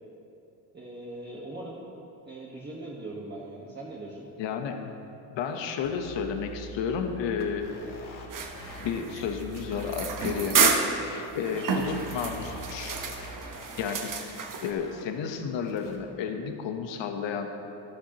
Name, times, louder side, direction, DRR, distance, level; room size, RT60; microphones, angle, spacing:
voice 1, 0.7-1.8 2.2-4.3, right 2 dB, 20° right, -5 dB, 1.4 m, -40 dB
voice 2, 4.4-4.9 5.3-7.7 8.8-13.0 13.8-17.5, left 6 dB, 70° left, 5 dB, 1.2 m, -32 dB
sound 1, 5.8-8.3 8.5-8.8 9.1-11.3 11.5-14.2 14.5-15.0 15.6-16.0, left 1 dB, 45° left, 2.0 m, -44 dB
sound 2, 8.3-14.7, right 5 dB, 45° right, 1.1 m, -30 dB
13.0 x 11.5 x 3.0 m, 2.9 s
cardioid pair, 95°, 46 cm